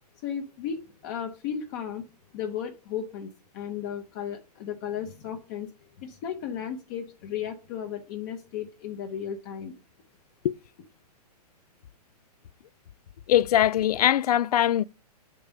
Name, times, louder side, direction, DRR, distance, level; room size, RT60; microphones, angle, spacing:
voice 1, 0.2-2.0 2.3-5.7 6.0-9.8, left 8 dB, 30° left, 0.9 m, -35 dB
voice 2, 13.3-14.9, left 12 dB, 70° left, 0.4 m, -21 dB
7.2 x 5.4 x 5.2 m
hypercardioid pair, 165°, 21 cm